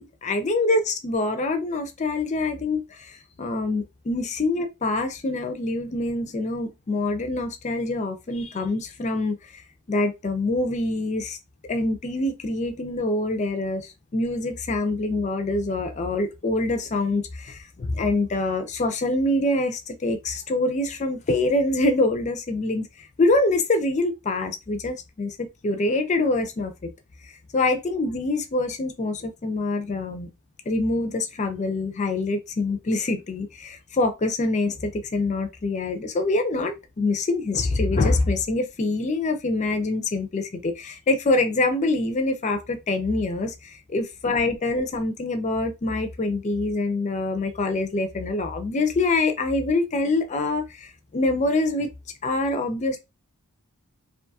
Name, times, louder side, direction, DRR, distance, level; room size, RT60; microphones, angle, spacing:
voice 1, 0.0-9.4 9.9-11.4 11.7-22.9 23.2-26.7 27.5-30.3 30.7-51.9 52.2-53.0, left 2 dB, 30° left, 0.4 m, -25 dB
2.6 x 2.3 x 2.6 m
head